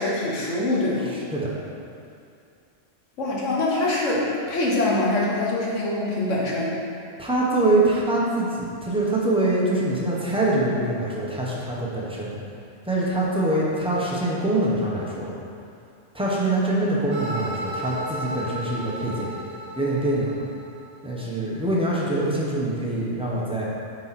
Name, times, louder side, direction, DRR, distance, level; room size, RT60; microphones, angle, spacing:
voice 1, 0.0-1.1 3.2-6.8, left 2 dB, 75° left, -4 dB, 1.5 m, -24 dB
voice 2, 1.0-1.5 7.2-12.4 12.9-15.3 16.1-19.3 19.7-20.3 21.0-23.6, right 2 dB, 5° right, -6 dB, 1.1 m, -24 dB
sound 1, 17.1-21.1, right 1 dB, 55° right, 1.0 m, -34 dB
8.4 x 4.6 x 4.3 m, 2.5 s
omnidirectional pair, 1.3 m